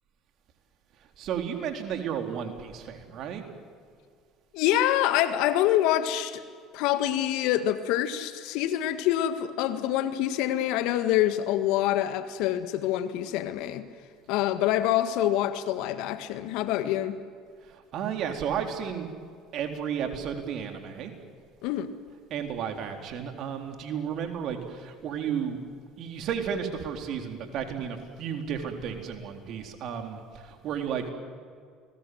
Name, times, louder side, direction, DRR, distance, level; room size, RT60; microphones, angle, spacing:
voice 1, 1.2-3.4 17.7-19.1 19.5-21.1 22.3-25.6 26.0-31.1, right 8 dB, 60° right, 4 dB, 3.8 m, -33 dB
voice 2, 4.5-6.4 6.7-13.9 14.3-17.2 21.6-21.9, left 12 dB, 70° left, 10 dB, 1.7 m, -26 dB
29.5 x 21.0 x 7.9 m, 2.1 s
hypercardioid pair, 65°, 0 cm